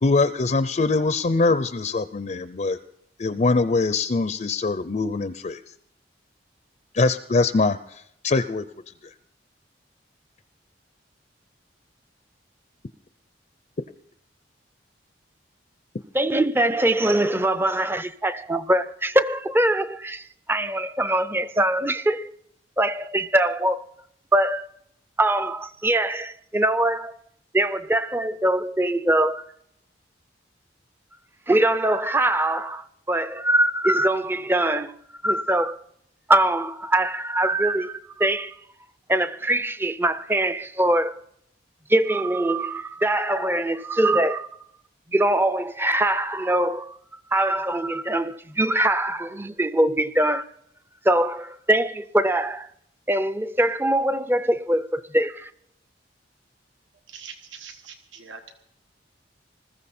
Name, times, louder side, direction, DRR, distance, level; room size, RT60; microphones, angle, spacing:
voice 1, 0.0-2.8 3.2-5.6 6.9-8.7 9.0-9.1, left 3 dB, 40° left, 0.5 m, -23 dB
voice 2, 16.1-22.3 22.8-23.8 24.3-24.7 25.2-27.2 27.5-29.4 31.5-35.0 35.2-35.8 36.3-38.6 39.1-41.2 41.9-44.5 45.1-47.0 47.3-50.5 51.0-52.7 53.1-55.5, right 1 dB, 10° right, 0.5 m, -22 dB
voice 3, 57.1-58.5, right 6 dB, 85° right, 1.4 m, -42 dB
20.5 x 14.5 x 4.3 m
head